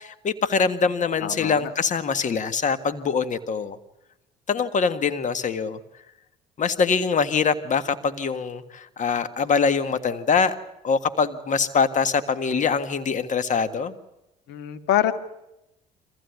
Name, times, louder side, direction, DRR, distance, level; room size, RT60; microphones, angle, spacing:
voice 1, 0.0-3.8 4.5-5.8 6.6-10.5 10.8-13.9, left 5 dB, 45° left, 12 dB, 1.7 m, -23 dB
voice 2, 1.2-1.7 14.5-15.1, left 12 dB, 70° left, 10 dB, 1.9 m, -25 dB
24.5 x 15.5 x 9.4 m, 0.89 s
supercardioid pair, 70°, 18 cm